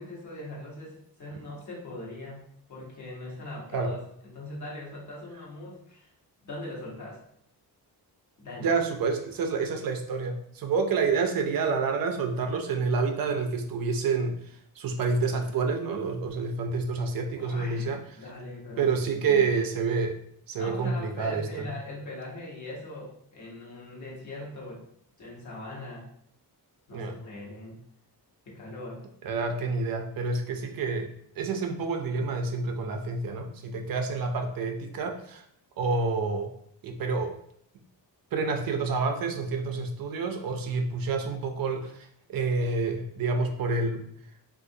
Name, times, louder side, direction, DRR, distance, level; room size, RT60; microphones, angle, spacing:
voice 1, 0.0-2.4 2.7-6.1 6.4-7.2 8.4-8.7 17.4-19.6 20.6-24.8 25.2-26.1 26.9-27.8 28.4-29.0, left 1 dB, 45° left, -3 dB, 1.1 m, -41 dB
voice 2, 8.6-18.0 18.8-20.1 20.5-21.7 26.9-27.1 29.2-31.1 31.4-35.4 35.8-36.5 36.8-37.3 38.3-44.0, right 4 dB, 60° right, 3 dB, 0.5 m, -28 dB
3.6 x 2.4 x 2.6 m, 0.70 s
wide cardioid pair, 165°, 40 cm